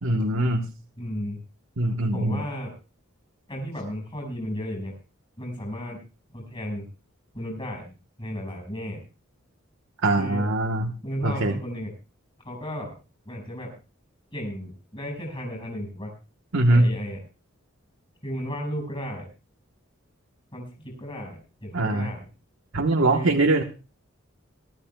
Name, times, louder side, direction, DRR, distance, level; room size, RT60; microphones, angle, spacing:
voice 1, 0.0-0.7 1.8-2.4 10.0-10.9 11.2-11.5 16.5-16.9 21.7-22.1 22.7-23.6, right 2 dB, 75° right, 3 dB, 1.2 m, -22 dB
voice 2, 1.0-1.4 2.1-2.7 3.5-4.9 5.4-6.0 6.3-6.9 7.3-7.9 8.2-9.0 10.2-10.4 11.0-11.9 12.4-12.9 13.3-13.7 14.3-16.1 16.7-17.2 18.2-19.3 20.5-22.2 23.1-23.4, equal, 25° left, 1 dB, 5.5 m, -34 dB
23.0 x 12.5 x 2.3 m, 0.32 s
head